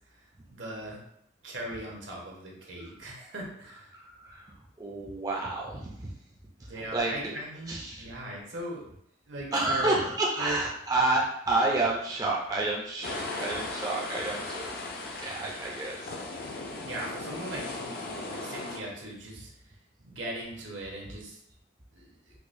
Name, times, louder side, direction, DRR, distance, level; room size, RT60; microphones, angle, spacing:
voice 1, 0.5-1.0 1.4-3.9 6.7-8.9 9.3-10.0 10.4-10.6 16.8-19.5 20.0-21.4 21.9-22.3, right 1 dB, 80° right, -2 dB, 1.0 m, -38 dB
voice 2, 3.9-6.1 6.9-7.1 7.7-8.0 9.5-14.8 15.2-16.1, right 2 dB, 20° right, -3 dB, 0.4 m, -30 dB
sound 1, 13.0-18.8, left 2 dB, 50° left, 0.4 m, -37 dB
4.8 x 2.1 x 2.5 m, 0.73 s
head